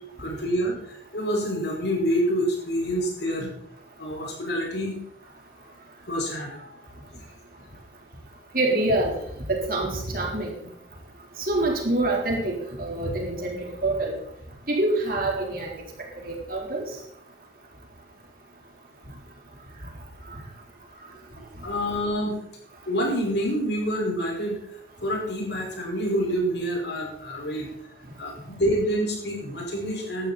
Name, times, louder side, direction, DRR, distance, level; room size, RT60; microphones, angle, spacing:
voice 1, 0.2-3.5 4.0-5.0 6.1-6.6 21.4-22.4 22.9-24.6 25.0-27.7 28.2-30.3, equal, 65° left, -1 dB, 5.1 m, -27 dB
voice 2, 8.5-9.1 9.5-10.5 11.4-13.6 13.8-14.1 14.7-15.7 16.2-16.8, right 2 dB, 50° right, -1 dB, 4.0 m, -25 dB
16.5 x 12.0 x 4.3 m, 0.75 s
head